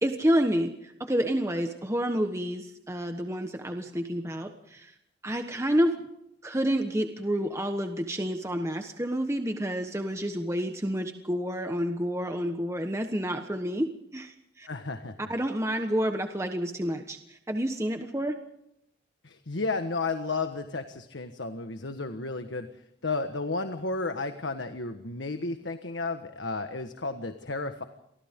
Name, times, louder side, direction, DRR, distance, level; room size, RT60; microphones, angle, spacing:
voice 1, 0.0-4.9 5.2-6.0 6.4-14.7 15.3-18.4, equal, 15° right, 5 dB, 1.2 m, -29 dB
voice 2, 14.7-15.1 19.2-22.7 23.0-27.8, left 3 dB, 85° left, 7 dB, 1.5 m, -32 dB
30.0 x 24.0 x 3.8 m, 0.78 s
head